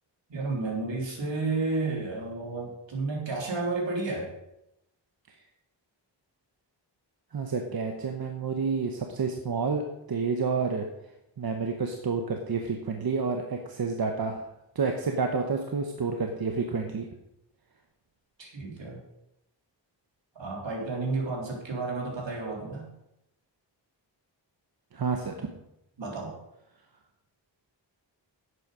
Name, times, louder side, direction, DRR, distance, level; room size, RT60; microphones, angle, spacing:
voice 1, 0.3-4.3 18.4-19.0 20.4-22.9 26.0-26.3, right 3 dB, 75° right, -1 dB, 3.5 m, -31 dB
voice 2, 7.3-10.9 11.4-14.5 14.7-17.1 24.9-25.5, right 4 dB, 55° right, 4 dB, 1.1 m, -29 dB
11.0 x 8.3 x 5.1 m, 0.86 s
wide cardioid pair, 125°, 44 cm